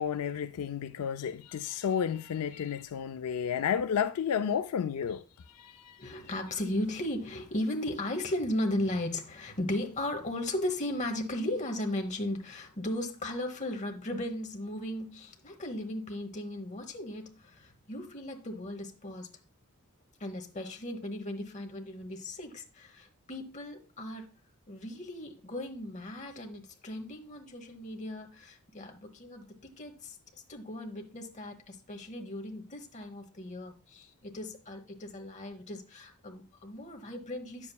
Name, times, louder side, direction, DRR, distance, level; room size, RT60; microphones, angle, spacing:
voice 1, 0.0-5.2 5.5-6.1, left 8 dB, 80° left, 0.4 m, -32 dB
voice 2, 6.0-19.3 20.2-24.3 24.7-30.2 30.5-37.7, left 1 dB, 30° left, 1.0 m, -36 dB
9.4 x 7.2 x 2.3 m
head